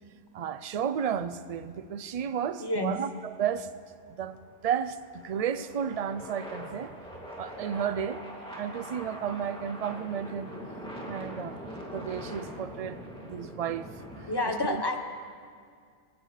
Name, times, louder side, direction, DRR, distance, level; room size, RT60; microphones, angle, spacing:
voice 1, 0.3-3.7 4.1-4.4 4.6-7.0 7.4-8.2 8.6-10.5 11.1-11.6 11.9-13.9 14.2-14.3 14.7-14.8, right 8 dB, 65° right, 13 dB, 0.3 m, -32 dB
voice 2, 2.6-3.0 14.3-15.0, left 1 dB, 20° left, 5 dB, 1.0 m, -29 dB
sound 1, 4.0-14.4, equal, 5° left, 2.4 m, -43 dB
26.5 x 16.5 x 3.3 m, 2.1 s
omnidirectional pair, 1.3 m